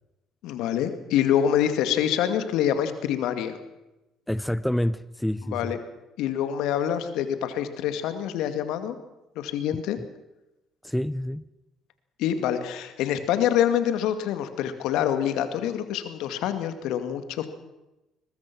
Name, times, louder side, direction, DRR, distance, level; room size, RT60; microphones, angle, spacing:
voice 1, 0.4-3.6 5.5-5.8 6.2-9.0 9.4-10.0 12.2-17.5, left 10 dB, 70° left, 9 dB, 2.2 m, -26 dB
voice 2, 4.3-5.7 10.8-11.4, left 1 dB, 5° left, 17 dB, 0.7 m, -27 dB
21.5 x 21.0 x 6.1 m, 0.97 s
hypercardioid pair, 60°, 0 cm